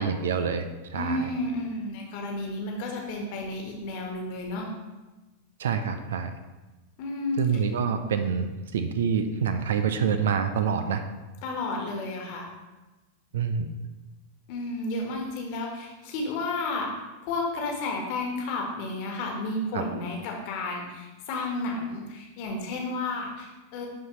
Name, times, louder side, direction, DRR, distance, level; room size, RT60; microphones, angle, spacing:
voice 1, 0.0-1.3 5.6-6.3 7.4-11.0 13.3-13.7 19.7-19.8, right 6 dB, 60° right, 9 dB, 0.5 m, -27 dB
voice 2, 0.9-4.7 7.0-7.4 11.4-12.5 14.5-16.9 17.2-23.9, left 2 dB, 45° left, 0 dB, 1.5 m, -32 dB
11.0 x 4.1 x 3.2 m, 1.1 s
figure-of-eight pair, 90°, 0 cm